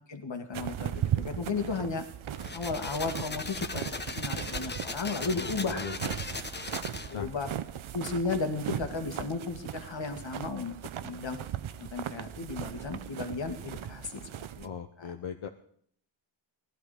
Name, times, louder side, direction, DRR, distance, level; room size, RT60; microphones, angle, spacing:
voice 1, 0.1-2.0 2.5-5.9 7.1-7.5 7.9-10.7 11.0-11.4 11.8-14.3 14.6-14.7 15.0-15.1, left 4 dB, 60° left, 5 dB, 2.1 m, -34 dB
sound 1, 0.5-14.7, right 11 dB, 75° right, 0.8 m, -38 dB
sound 2, 2.3-7.3, left 3 dB, 20° left, 1.0 m, -38 dB
voice 2, 5.3-6.1 7.1-7.3 14.6-15.5, left 6 dB, 80° left, 4 dB, 1.0 m, -39 dB
17.5 x 11.5 x 5.0 m, 0.63 s
cardioid pair, 70°, 49 cm